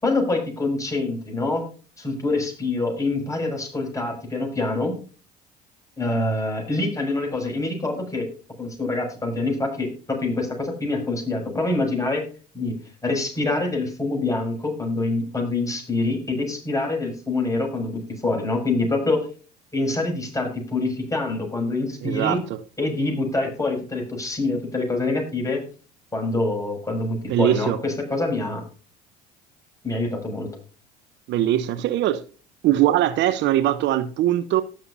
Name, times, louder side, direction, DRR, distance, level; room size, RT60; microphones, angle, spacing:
voice 1, 0.0-1.6 2.0-5.0 6.0-8.3 8.6-12.2 12.5-12.8 13.0-19.3 19.7-22.4 22.8-25.6 26.1-28.6 29.8-30.5, left 2 dB, 15° left, 6.7 m, -25 dB
voice 2, 22.0-22.6 27.3-27.8 31.3-32.2 32.6-34.6, right 13 dB, 60° right, 0.9 m, -21 dB
19.0 x 6.8 x 2.7 m
hypercardioid pair, 70°, 21 cm